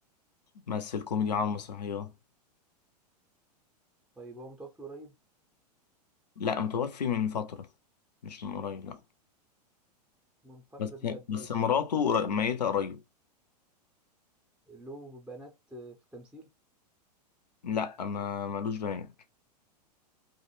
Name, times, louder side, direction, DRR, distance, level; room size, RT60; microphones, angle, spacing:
voice 1, 0.7-2.1 6.4-7.7 8.2-9.0 10.8-13.0 17.6-19.1, left 7 dB, 80° left, 0.5 m, -31 dB
voice 2, 4.2-5.1 10.4-11.9 14.6-16.5, right 2 dB, 5° right, 0.5 m, -46 dB
2.4 x 2.1 x 3.0 m
figure-of-eight pair, 95°, 21 cm